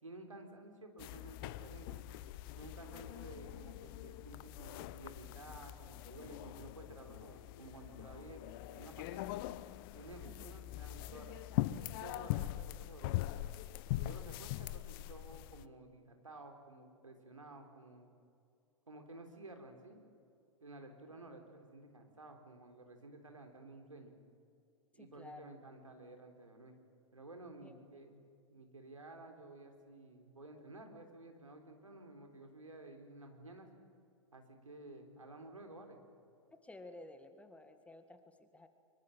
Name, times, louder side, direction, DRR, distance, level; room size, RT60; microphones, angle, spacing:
voice 1, 0.0-2.1 2.6-9.3 10.0-11.4 11.9-13.3 14.0-18.1 18.9-20.0 20.6-24.2 24.9-26.8 27.1-28.2 28.5-33.7 34.3-36.0, right 2 dB, 85° right, 4 dB, 3.6 m, -53 dB
sound 1, 1.0-15.6, left 15 dB, 45° left, 0.7 m, -42 dB
voice 2, 24.9-25.6 27.6-27.8 36.5-38.7, left 2 dB, 10° left, 9 dB, 1.7 m, -54 dB
24.5 x 23.0 x 7.7 m, 2.5 s
figure-of-eight pair, 100°, 16 cm